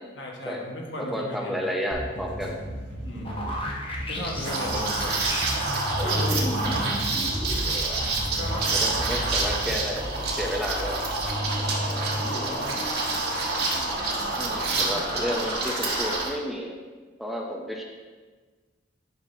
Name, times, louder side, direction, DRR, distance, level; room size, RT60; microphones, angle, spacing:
voice 1, 0.1-1.5 3.0-3.6 4.1-5.2 6.0-6.9 8.2-8.9 9.2-9.5 10.5-10.6 11.4-11.7 11.9-12.9, left 1 dB, 80° left, -1 dB, 1.4 m, -36 dB
voice 2, 1.0-2.6 3.5-3.6 8.7-10.1 10.3-11.0 14.4-16.8 17.2-17.8, equal, ahead, 0 dB, 0.6 m, -31 dB
sound 1, 1.9-9.9, equal, 75° right, 1.3 m, -36 dB
sound 2, 3.2-16.2, left 1 dB, 30° left, 0.9 m, -33 dB
Liquid, 4.4-16.3, right 3 dB, 60° right, 1.3 m, -28 dB
9.9 x 5.7 x 2.8 m, 1.4 s
head